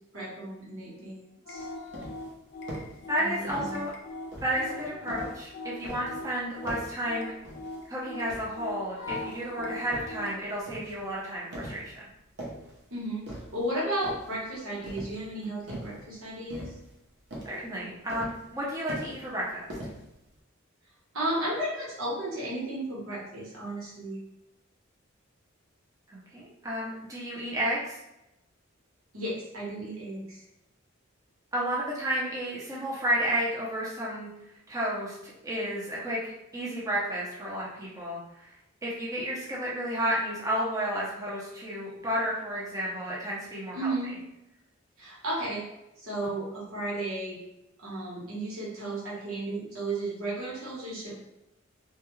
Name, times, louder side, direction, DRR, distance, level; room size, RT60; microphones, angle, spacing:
voice 1, 0.1-1.7 3.2-3.8 12.9-16.8 21.1-24.2 29.1-30.4 43.7-44.1 45.0-45.6 46.0-47.4 47.8-51.1, right 1 dB, 85° right, -5 dB, 1.0 m, -34 dB
sound 1, 1.5-10.4, left 2 dB, 55° left, 0.4 m, -40 dB
sound 2, 1.6-2.3 2.7-3.0 3.5-3.9 4.3-5.5 5.8-6.2 6.6-7.0 7.4-7.9 8.3-9.4 9.9-10.2 10.7-11.0 11.5-11.9 12.2-12.8 13.3-13.7 14.0-14.4 14.8-15.3 15.7-16.1 16.5-17.0 17.3-17.6 18.1-18.6 18.9-19.4 19.7-20.4, right 1 dB, 60° right, 0.7 m, -41 dB
voice 2, 3.1-3.9 4.4-7.3 7.9-12.0 17.4-19.8 26.1-28.0 31.5-34.3 34.7-38.5 38.8-43.9, equal, 15° right, -6 dB, 0.5 m, -32 dB
2.2 x 2.2 x 3.0 m, 0.90 s
head